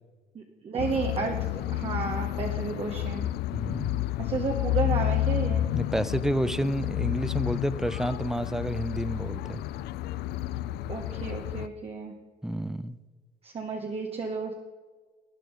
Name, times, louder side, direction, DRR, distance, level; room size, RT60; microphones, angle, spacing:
voice 1, 0.3-3.3 4.2-5.6 10.9-12.1 13.4-14.5, right 4 dB, 35° right, 1 dB, 1.1 m, -32 dB
sound 1, 0.8-11.7, left 14 dB, 75° left, 0.4 m, -30 dB
voice 2, 3.5-4.1 5.7-9.6 12.4-13.0, right 1 dB, 5° right, 15 dB, 0.4 m, -30 dB
12.5 x 9.3 x 5.1 m, 1.4 s
cardioid pair, 110°, 17 cm